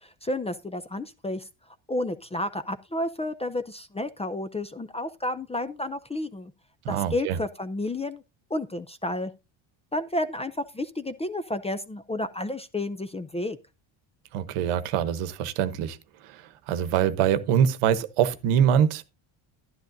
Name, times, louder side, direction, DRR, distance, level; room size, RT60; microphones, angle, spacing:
voice 1, 0.0-1.4 1.9-6.5 6.9-8.2 8.5-9.3 9.9-13.6, left 1 dB, 15° left, 0.4 m, -31 dB
voice 2, 6.8-7.4 14.3-16.0 16.2-19.0, right 9 dB, 85° right, 1.1 m, -24 dB
11.5 x 10.5 x 2.6 m
cardioid pair, 100°, 50 cm